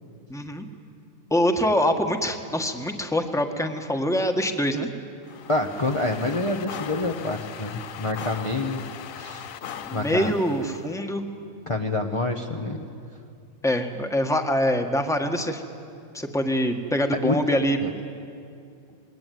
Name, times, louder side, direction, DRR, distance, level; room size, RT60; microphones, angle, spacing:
voice 1, 0.3-0.6 1.3-4.9 9.8-11.2 13.6-15.6 16.1-17.8, equal, ahead, 5 dB, 1.5 m, -24 dB
sound 1, 5.2-10.9, left 9 dB, 75° left, 1.2 m, -39 dB
voice 2, 5.5-9.5 9.9-10.3 11.7-12.8 17.2-17.4 17.8-17.9, left 2 dB, 25° left, 1 dB, 1.1 m, -27 dB
27.0 x 21.5 x 9.4 m, 2.5 s
omnidirectional pair, 1.4 m